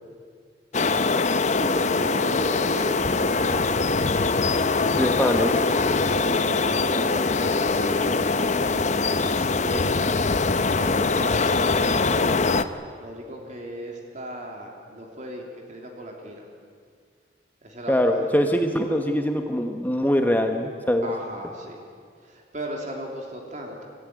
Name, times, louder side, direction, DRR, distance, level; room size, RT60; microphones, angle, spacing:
sound 1, 0.7-12.6, left 3 dB, 45° left, 0.8 m, -23 dB
voice 1, 1.2-4.4 6.1-8.8 9.5-10.0 10.6-12.4 13.0-16.5 17.6-18.6 21.0-21.8 22.2-23.9, equal, 45° right, 1 dB, 2.9 m, -36 dB
voice 2, 4.9-5.6 17.9-21.1, equal, 10° left, 4 dB, 1.1 m, -23 dB
26.0 x 14.5 x 9.5 m, 2.1 s
head